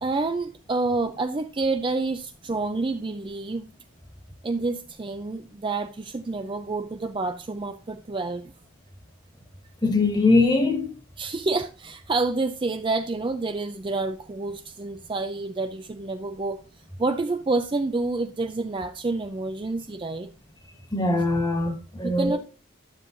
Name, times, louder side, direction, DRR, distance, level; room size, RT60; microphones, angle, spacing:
voice 1, 0.0-3.7 4.4-8.5 11.2-16.6 17.0-20.3 22.0-22.4, right 3 dB, 25° right, 0.4 m, -28 dB
voice 2, 9.8-10.9 20.9-22.4, left 2 dB, 20° left, 1.5 m, -22 dB
11.5 x 7.2 x 2.6 m
head